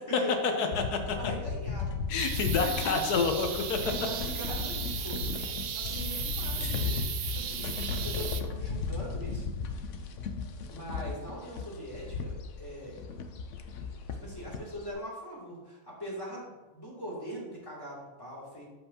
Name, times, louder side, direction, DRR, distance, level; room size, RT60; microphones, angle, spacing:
voice 1, 0.2-0.7 1.1-2.0 2.6-3.0 3.8-9.9 10.7-13.0 14.2-18.7, equal, 15° left, -6 dB, 2.7 m, -42 dB
sound 1, 0.7-14.9, left 5 dB, 60° left, 0.9 m, -36 dB
voice 2, 2.1-3.8 6.6-7.0, left 5 dB, 90° left, 5 dB, 1.3 m, -29 dB
sound 2, 2.2-8.4, right 8 dB, 65° right, 0.6 m, -36 dB
12.5 x 5.4 x 2.8 m, 1.2 s
omnidirectional pair, 1.6 m